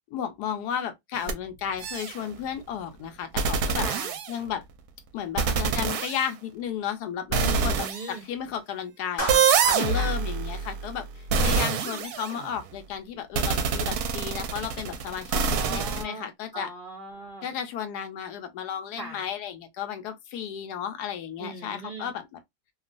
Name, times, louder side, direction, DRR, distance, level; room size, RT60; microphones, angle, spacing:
voice 1, 0.1-3.9 4.3-4.6 5.1-11.1 11.4-15.3 15.6-16.7 17.4-22.4, left 9 dB, 75° left, 1.1 m, -33 dB
sound 1, 1.1-1.3 1.8-2.2 3.4-4.6 5.4-6.2 7.3-8.1 9.3-12.6 13.4-16.0, right 5 dB, 70° right, 1.0 m, -26 dB
voice 2, 3.8-4.1 7.4-8.2 9.9-10.2 15.3-16.3 16.5-17.5 18.9-19.2 21.4-22.1, right 3 dB, 55° right, 0.6 m, -39 dB
Clapping, 9.2-9.9, equal, 55° left, 0.5 m, -31 dB
2.9 x 2.3 x 2.4 m
omnidirectional pair, 1.8 m